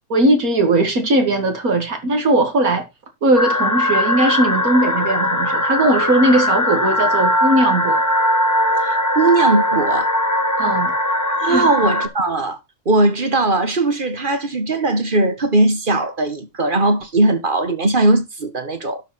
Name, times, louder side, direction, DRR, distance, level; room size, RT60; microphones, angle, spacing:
voice 1, 0.1-2.9 3.2-8.0 10.6-10.9 11.5-11.7, right 1 dB, 75° right, 2.4 m, -18 dB
sound 1, 3.4-12.1, equal, 10° left, 1.6 m, -19 dB
voice 2, 8.8-10.1 11.4-12.6 12.9-19.0, right 2 dB, 35° right, 1.7 m, -19 dB
12.0 x 5.0 x 5.9 m
omnidirectional pair, 1.5 m